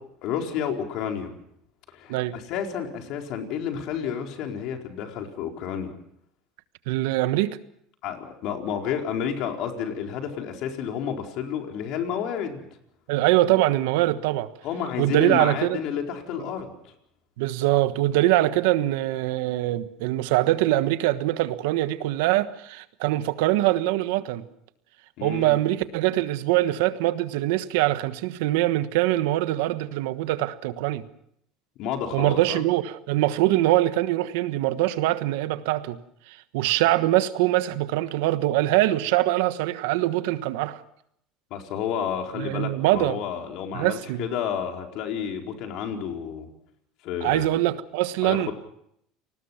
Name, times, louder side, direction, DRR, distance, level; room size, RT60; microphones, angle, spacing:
voice 1, 0.2-1.3 1.9-5.9 8.0-12.7 14.6-16.9 25.2-25.6 31.8-32.6 41.5-46.5 47.0-47.5 48.2-48.5, left 8 dB, 60° left, 4.5 m, -30 dB
voice 2, 6.9-7.6 13.1-14.5 15.0-15.8 17.4-24.4 25.2-31.1 32.1-36.0 36.3-40.8 42.4-43.2 43.7-44.2 47.2-48.5, right 16 dB, 80° right, 1.3 m, -23 dB
29.5 x 20.0 x 5.8 m
supercardioid pair, 115°, 0 cm